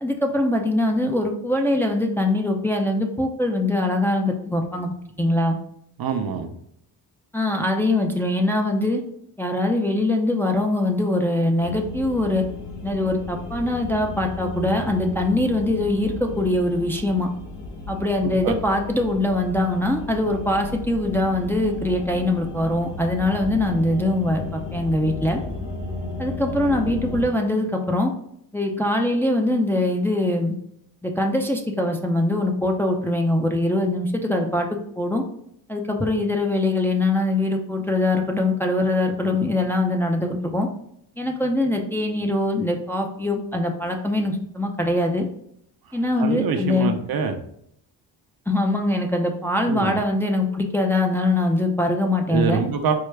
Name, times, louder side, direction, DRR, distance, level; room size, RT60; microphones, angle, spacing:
voice 1, 0.0-5.6 7.3-9.0 9.4-12.4 12.8-17.3 17.9-25.4 26.2-28.1 28.5-30.5 31.0-35.2 35.7-40.7 41.2-45.3 45.9-46.9 48.5-52.6, left 1 dB, 5° left, 1 dB, 0.5 m, -22 dB
voice 2, 6.0-6.5 18.2-18.5 46.2-47.4 49.7-50.0 52.3-52.9, right 6 dB, 55° right, 5 dB, 0.7 m, -25 dB
sound 1, 11.6-27.3, left 3 dB, 70° left, 1.0 m, -34 dB
4.7 x 2.1 x 3.2 m, 0.71 s
cardioid pair, 75°, 43 cm